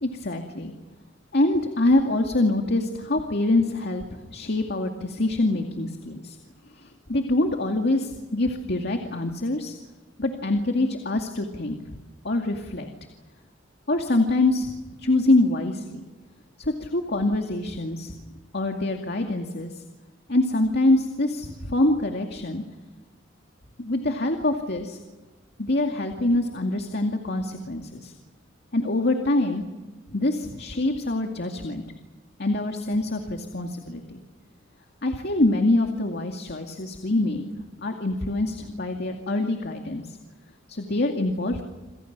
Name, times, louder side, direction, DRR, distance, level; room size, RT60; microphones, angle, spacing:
voice 1, 0.0-0.7 1.3-6.4 6.8-9.8 10.2-12.0 12.2-12.9 13.9-14.7 15.0-16.0 16.6-18.1 18.5-19.8 20.3-22.6 23.8-25.0 25.6-28.1 28.7-29.6 30.1-31.8 32.4-34.2 35.0-37.4 37.8-40.2 40.7-41.6, left 2 dB, 55° left, 4 dB, 2.3 m, -25 dB
28.5 x 27.0 x 6.1 m, 1.2 s
head